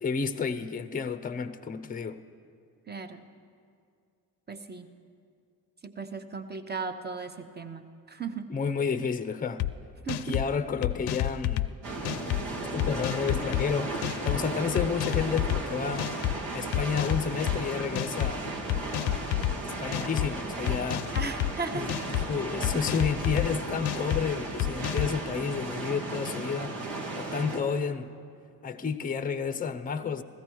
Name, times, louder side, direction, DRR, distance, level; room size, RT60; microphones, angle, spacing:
voice 1, 0.0-2.2 8.5-9.7 10.3-11.7 12.7-14.0 14.2-16.1 16.5-18.5 19.6-21.1 21.7-21.9 22.3-26.8 27.1-28.1 28.6-30.2, left 5 dB, 20° left, 0.6 m, -31 dB
voice 2, 2.9-3.3 4.5-4.9 5.8-8.5 10.0-10.4 21.1-22.1, right 4 dB, 25° right, 0.9 m, -36 dB
sound 1, 9.6-9.7 10.1-10.5 10.8-11.7 12.0-12.4 12.8-13.6 14.0-14.4 14.8-15.6 16.0-16.3 16.7-17.6 18.0-18.3 18.7-19.5 19.9-20.3 20.7-21.5 21.9-22.3 22.6-23.5 23.9-24.2 24.6-25.1, left 14 dB, 65° left, 0.6 m, -29 dB
sound 2, 11.8-27.6, right 2 dB, 80° right, 1.7 m, -35 dB
15.5 x 14.0 x 4.7 m
supercardioid pair, 55°, 43 cm